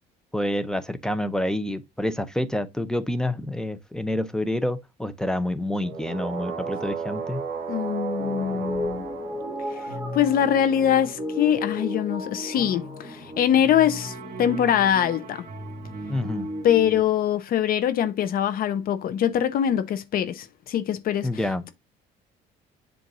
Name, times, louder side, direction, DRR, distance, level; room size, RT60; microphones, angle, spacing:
voice 1, 0.3-7.4 16.1-16.5 21.2-21.6, left 1 dB, 5° left, 0.7 m, -28 dB
sound 1, 5.8-10.4 13.8-16.6, right 5 dB, 60° right, 1.5 m, -35 dB
voice 2, 7.7-9.0 10.1-15.5 16.6-21.3, left 10 dB, 60° left, 0.7 m, -23 dB
sound 2, 8.2-17.0, left 1 dB, 20° right, 1.6 m, -35 dB
7.6 x 2.6 x 5.3 m
cardioid pair, 110°, 17 cm